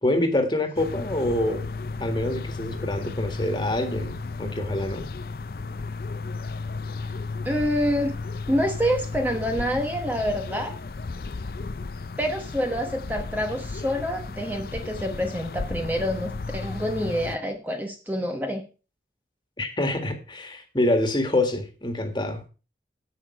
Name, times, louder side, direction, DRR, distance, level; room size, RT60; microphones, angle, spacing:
voice 1, 0.0-1.7 2.0-5.1 19.6-22.4, left 1 dB, 25° left, 1.8 m, -26 dB
sound 1, 0.8-17.4, left 3 dB, 55° left, 0.5 m, -34 dB
voice 2, 7.4-8.1 8.5-10.7 12.2-18.6, equal, 10° right, 1.0 m, -27 dB
10.5 x 8.5 x 4.6 m
head